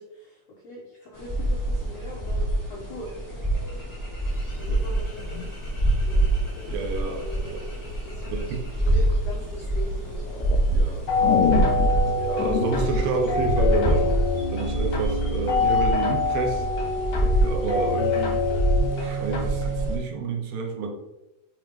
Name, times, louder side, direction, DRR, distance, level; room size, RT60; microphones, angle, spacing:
voice 1, 0.0-3.1 4.6-5.4 6.0-6.3 7.2-7.7 8.0-8.3 8.6-10.2 11.9-12.2, equal, 75° left, -4 dB, 1.5 m, -41 dB
sound 1, 1.1-20.0, right 1 dB, 20° left, 0.5 m, -26 dB
sound 2, 5.0-6.9 7.9-8.4 8.9-9.7 10.3-13.7, left 10 dB, 90° left, 1.9 m, -30 dB
voice 2, 6.7-7.7 8.3-8.6 10.7-11.0 11.8-11.9 12.2-14.3 14.5-16.7 17.2-18.5 18.9-20.9, right 4 dB, 80° right, 2 dB, 2.6 m, -29 dB
sound 3, 11.1-19.9, left 3 dB, 55° left, 1.5 m, -26 dB
7.5 x 3.0 x 5.1 m, 0.95 s
omnidirectional pair, 4.6 m